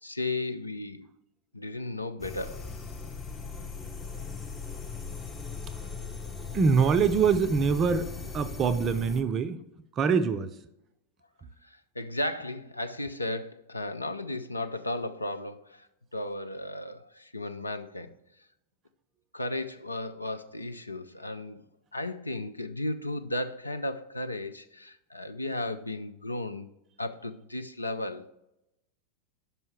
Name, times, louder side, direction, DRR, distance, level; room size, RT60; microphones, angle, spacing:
voice 1, 0.0-1.1 1.5-2.6 11.6-15.9 16.1-18.1 19.3-21.6 21.9-26.7 27.0-28.3, left 1 dB, 85° left, 0.4 m, -35 dB
sound 1, 2.2-9.2, left 5 dB, 20° left, 0.8 m, -39 dB
voice 2, 6.5-9.6 9.9-10.6, right 5 dB, 30° right, 0.5 m, -24 dB
5.5 x 5.5 x 5.8 m
figure-of-eight pair, 90°, 0 cm